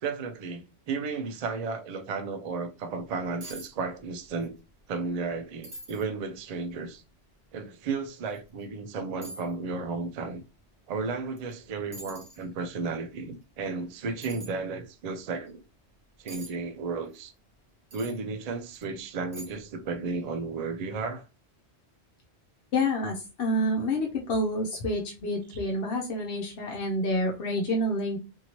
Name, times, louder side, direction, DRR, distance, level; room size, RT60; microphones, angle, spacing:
voice 1, 0.0-4.6 4.9-7.0 7.5-10.4 10.9-15.6 16.2-17.3 17.9-21.2 25.5-25.6, right 4 dB, 55° right, 0.4 m, -33 dB
sound 1, 3.0-3.1 3.4-3.7 4.0-4.5 4.9-5.0 5.6-6.1 6.7-6.8 8.3-8.4 9.2-9.5 11.4-11.5 11.9-12.4 14.2-14.5 16.3-16.5 17.9-18.2 18.7-18.8 19.3-19.7 20.0-20.1, right 2 dB, 40° right, 0.9 m, -44 dB
voice 2, 22.7-28.2, left 1 dB, 65° left, 0.9 m, -28 dB
2.8 x 2.6 x 2.9 m
omnidirectional pair, 1.1 m